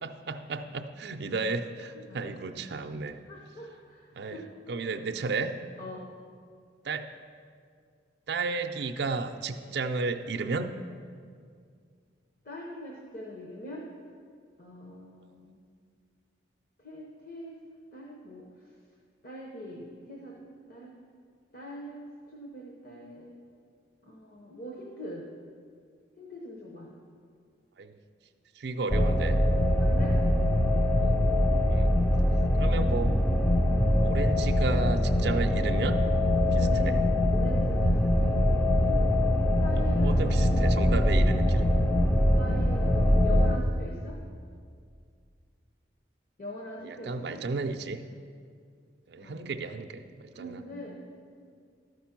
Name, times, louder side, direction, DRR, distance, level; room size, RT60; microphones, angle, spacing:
voice 1, 0.0-3.2 4.1-5.6 6.8-7.1 8.3-10.7 27.8-28.0 28.6-29.4 31.0-31.1 31.7-31.9 32.6-33.1 34.0-36.0 36.5-37.0 39.8-41.7 46.8-48.0 49.1-50.6, right 3 dB, 65° right, 6 dB, 0.4 m, -33 dB
voice 2, 3.3-4.5 5.8-6.1 12.4-13.9 14.6-15.6 16.8-17.6 17.9-18.5 19.2-20.4 20.7-20.9 21.5-23.3 24.0-25.2 26.2-26.9 29.8-30.2 32.1-32.9 36.6-36.9 37.3-39.0 39.6-40.4 42.3-44.2 46.4-47.4 49.2-49.5 50.3-51.0 51.4-51.5, equal, 50° left, -2 dB, 0.9 m, -43 dB
sound 1, 28.9-43.6, left 1 dB, 5° left, 0.3 m, -23 dB
12.5 x 5.1 x 5.9 m, 2.2 s
head